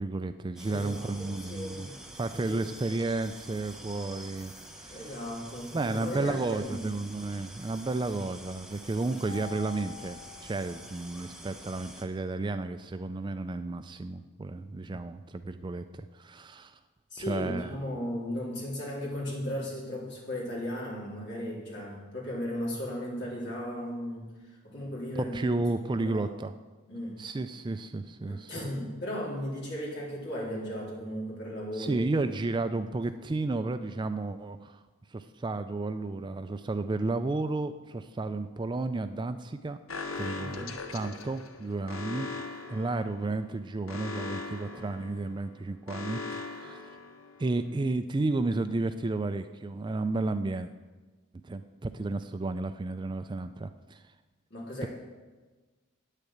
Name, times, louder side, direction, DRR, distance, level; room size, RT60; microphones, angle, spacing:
voice 1, 0.0-1.9 2.1-5.1 5.7-16.8 17.2-17.7 25.3-26.5 27.2-28.7 31.7-34.8 35.1-39.8 40.2-42.3 42.7-47.0 47.4-50.7 51.4-54.0, right 2 dB, 20° right, 10 dB, 0.3 m, -32 dB
sound 1, 0.6-12.0, right 1 dB, ahead, 1.0 m, -47 dB
voice 2, 0.7-1.9 2.3-2.6 4.9-6.9 17.1-24.3 24.6-25.6 26.0-26.3 26.9-27.1 28.2-31.9 40.3-40.7 54.5-54.9, equal, 55° left, -5 dB, 3.8 m, -36 dB
Mallet percussion, 9.3-11.5, left 8 dB, 20° left, 2.2 m, -47 dB
Alarm, 39.9-47.7, left 3 dB, 80° left, 1.0 m, -40 dB
9.5 x 6.6 x 8.6 m, 1.3 s
head